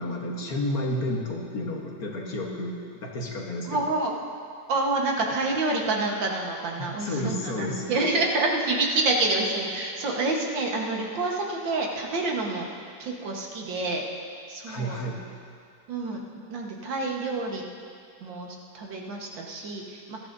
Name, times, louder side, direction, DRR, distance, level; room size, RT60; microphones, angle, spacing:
voice 1, 0.0-3.9 6.8-8.0 14.7-15.2, left 1 dB, 55° left, 0 dB, 1.7 m, -31 dB
voice 2, 3.6-4.2 4.7-12.7 13.0-14.1 14.5-15.0 15.9-17.6 18.2-20.2, right 2 dB, 80° right, -1 dB, 2.1 m, -28 dB
20.0 x 13.5 x 2.7 m, 2.3 s
omnidirectional pair, 2.0 m